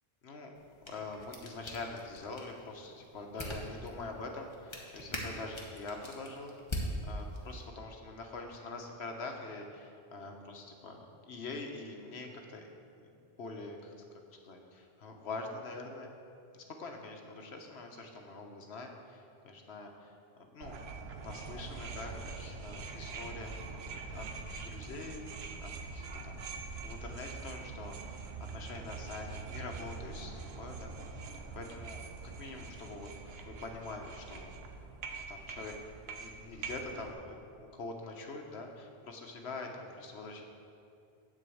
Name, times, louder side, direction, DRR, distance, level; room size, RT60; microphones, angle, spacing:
sound 1, 0.5-7.7, equal, 30° left, 1.2 m, -43 dB
voice 1, 0.9-12.7 13.4-13.9 14.4-16.1 16.8-20.1 20.4-23.6 23.9-24.3 24.6-26.4 26.8-32.0 32.4-33.1 33.4-34.6 35.1-40.4, left 3 dB, 90° left, 3 dB, 1.3 m, -44 dB
sound 2, 20.6-37.1, right 4 dB, 80° right, 1.0 m, -44 dB
10.0 x 4.5 x 7.8 m, 2.5 s
omnidirectional pair, 1.1 m